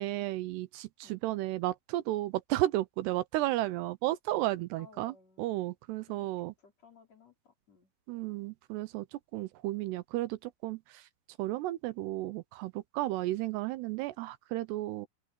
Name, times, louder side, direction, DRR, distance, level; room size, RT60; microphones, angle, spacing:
voice 1, 0.0-6.5 8.1-9.1 9.3-11.0 11.4-15.1, right 16 dB, 80° right, 2.7 m, -33 dB
voice 2, 4.8-5.7 6.2-7.9, left 5 dB, 40° left, 5.5 m, -60 dB
open air
omnidirectional pair, 4.9 m